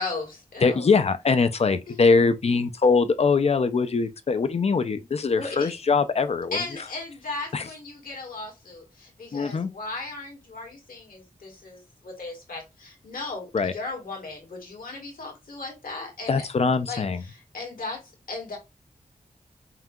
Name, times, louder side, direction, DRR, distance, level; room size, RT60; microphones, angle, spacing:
voice 1, 0.0-0.9 1.9-2.0 5.3-5.7 6.5-16.5 16.9-18.6, left 3 dB, 90° left, 1.8 m, -36 dB
voice 2, 0.6-6.6 7.5-7.7 9.3-9.7 13.5-13.7 16.3-17.2, left 4 dB, 45° left, 0.5 m, -22 dB
5.7 x 2.7 x 2.4 m
wide cardioid pair, 105°, 14 cm